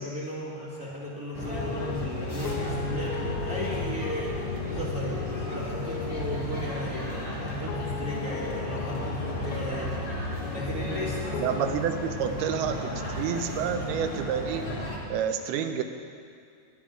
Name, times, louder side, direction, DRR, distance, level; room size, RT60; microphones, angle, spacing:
voice 1, 0.0-11.2, equal, 35° right, -6 dB, 1.6 m, -36 dB
sound 1, 1.3-15.0, equal, 50° left, 0.6 m, -34 dB
sound 2, 1.5-11.8, left 9 dB, 85° left, 2.5 m, -37 dB
voice 2, 11.4-14.6 15.1-15.8, right 8 dB, 85° right, 7 dB, 2.8 m, -29 dB
18.5 x 10.5 x 5.0 m, 2.3 s
omnidirectional pair, 4.4 m